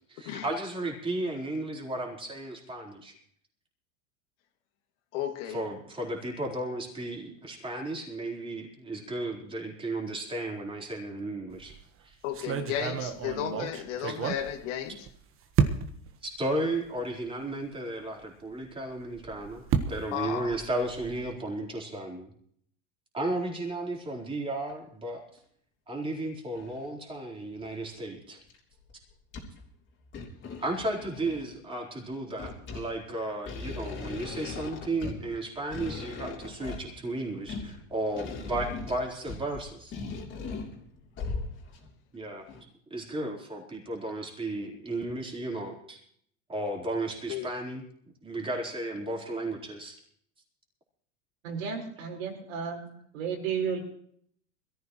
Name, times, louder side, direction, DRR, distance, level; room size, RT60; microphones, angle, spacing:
voice 1, 0.0-3.1 5.4-11.7 12.0-12.1 14.1-14.2 16.2-22.3 23.1-25.2 25.9-28.4 30.6-39.9 42.1-42.5 42.9-46.0 46.5-47.9 48.2-50.0, right 2 dB, 15° right, -1 dB, 4.2 m, -34 dB
voice 2, 5.1-5.6 12.2-15.1 20.1-20.5 47.3-47.5, left 10 dB, 65° left, 4 dB, 2.4 m, -34 dB
sound 1, 11.5-11.8 12.3-15.1 15.5-16.1 16.8-16.9 17.3-17.4 19.0-21.3, right 7 dB, 35° right, 1.4 m, -31 dB
sound 2, 24.7-24.8 25.4-25.5 26.6-26.9 27.6-28.1 28.5-28.6 28.9-29.7 30.0-31.6 32.1-41.9 42.5-42.6, left 4 dB, 30° left, 3.5 m, -39 dB
voice 3, 51.4-52.9 53.1-53.8, right 6 dB, 75° right, 1 dB, 5.0 m, -33 dB
21.5 x 14.5 x 3.2 m, 0.64 s
hypercardioid pair, 115°, 39 cm